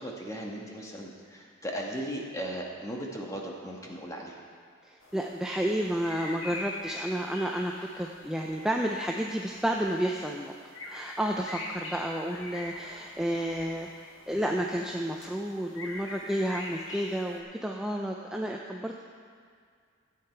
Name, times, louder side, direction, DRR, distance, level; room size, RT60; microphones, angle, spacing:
voice 1, 0.0-4.4, equal, 15° left, -1 dB, 1.3 m, -37 dB
voice 2, 4.8-10.5 10.9-13.9 14.3-19.0, equal, 5° right, 0 dB, 0.4 m, -31 dB
sound 1, 5.0-17.4, left 1 dB, 75° left, 1.5 m, -44 dB
14.0 x 8.6 x 4.5 m, 2.1 s
head